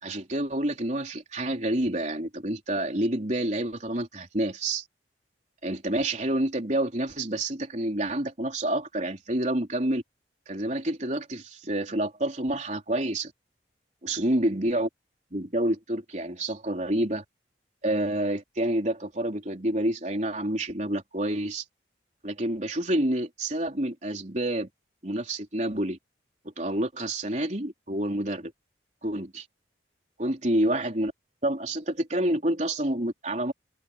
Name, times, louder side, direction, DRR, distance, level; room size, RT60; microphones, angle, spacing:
voice 1, 0.0-4.8 5.6-10.0 10.5-13.3 14.0-14.9 15.3-17.2 17.8-21.6 22.2-24.7 25.0-26.0 26.6-28.5 29.0-29.4 30.2-31.1 31.4-33.5, right 1 dB, 40° right, 3.9 m, -28 dB
head